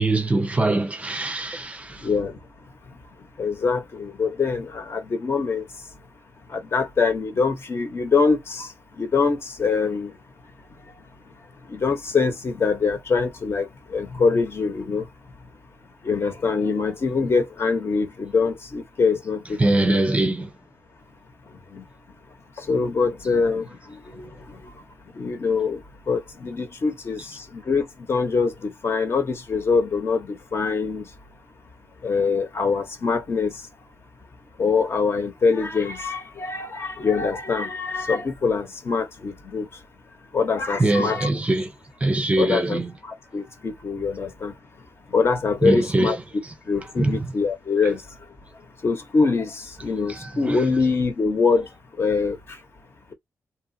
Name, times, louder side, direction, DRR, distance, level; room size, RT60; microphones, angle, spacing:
voice 1, 0.0-2.1 19.6-20.5 40.8-41.7 42.0-42.9 45.6-46.2 47.0-47.3 50.1-50.6, right 2 dB, 25° right, 0.5 m, -22 dB
voice 2, 2.0-2.4 3.4-5.7 6.5-8.7 9.0-10.1 11.7-15.1 16.0-20.0 21.7-21.8 22.6-24.3 25.2-25.8 26.1-31.0 32.0-33.5 34.6-39.7 40.3-41.3 42.4-44.5 45.1-46.2 46.7-48.0 48.8-51.7 52.0-52.4, left 4 dB, 45° left, 1.0 m, -24 dB
2.9 x 2.4 x 2.6 m
cardioid pair, 90°, 6 cm